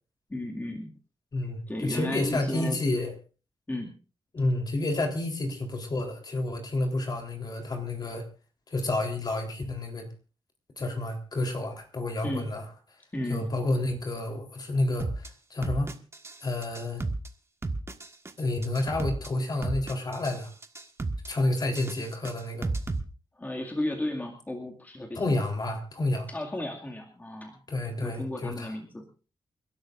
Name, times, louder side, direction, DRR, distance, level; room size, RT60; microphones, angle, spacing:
voice 1, 0.3-0.9 1.7-2.8 3.7-3.9 12.2-12.5 13.1-13.5 23.4-25.4 26.3-27.6 28.0-29.0, left 1 dB, 20° left, 1 dB, 2.2 m, -34 dB
voice 2, 1.3-3.1 4.3-8.3 8.7-10.1 10.8-12.7 13.3-15.9 16.4-17.0 18.4-20.5 21.3-22.7 25.1-26.3 27.7-28.7, left 2 dB, 45° left, 3 dB, 3.8 m, -30 dB
sound 1, 15.0-15.3 15.6-16.4 16.6-17.3 17.6-18.3 18.6-19.3 19.6-20.4 20.6-21.3 21.6-23.0, right 3 dB, 30° right, 1.6 m, -32 dB
29.0 x 12.0 x 2.6 m, 0.35 s
cardioid pair, 100°, 10 cm